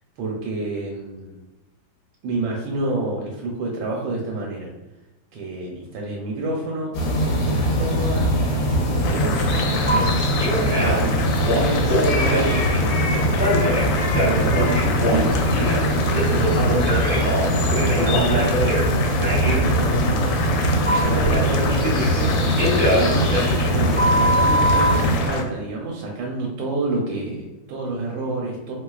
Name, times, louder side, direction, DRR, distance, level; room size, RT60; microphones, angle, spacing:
voice 1, 0.2-1.3 2.2-4.7 5.3-6.9 7.3-8.3 8.6-9.5 9.8-10.2 10.5-11.1 11.5-13.3 13.7-15.3 16.0-20.2 20.8-22.4 22.9-23.4 23.7-28.7, right 2 dB, 80° right, -1 dB, 1.3 m, -29 dB
sound 1, 6.9-25.2, equal, 60° left, 1.1 m, -22 dB
Boiling, 9.0-25.4, left 4 dB, 80° left, 1.3 m, -29 dB
Telephone, 9.9-10.0 10.4-11.0 11.4-12.8 13.3-15.8 16.1-18.9 19.2-19.6 20.9-22.2 22.6-24.9, equal, 15° right, 0.4 m, -23 dB
3.2 x 3.0 x 2.3 m, 1.1 s
omnidirectional pair, 2.2 m